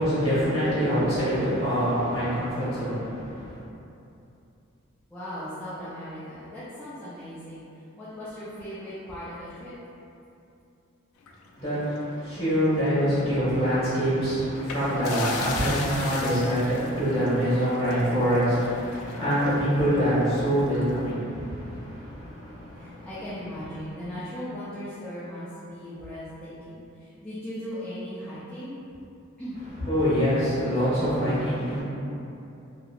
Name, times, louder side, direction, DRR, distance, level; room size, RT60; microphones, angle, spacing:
voice 1, 0.0-3.0 11.6-11.8 12.2-21.2 29.9-31.8, equal, 30° left, -12 dB, 1.5 m, -24 dB
voice 2, 5.1-7.7 8.0-9.8 13.0-13.2 22.7-28.8 29.4-29.6, equal, 5° left, -13 dB, 0.4 m, -38 dB
sound 1, 11.2-12.8 13.1-13.3 14.5-21.0, left 4 dB, 85° left, 0.3 m, -39 dB
3.0 x 2.8 x 2.4 m, 2.8 s
head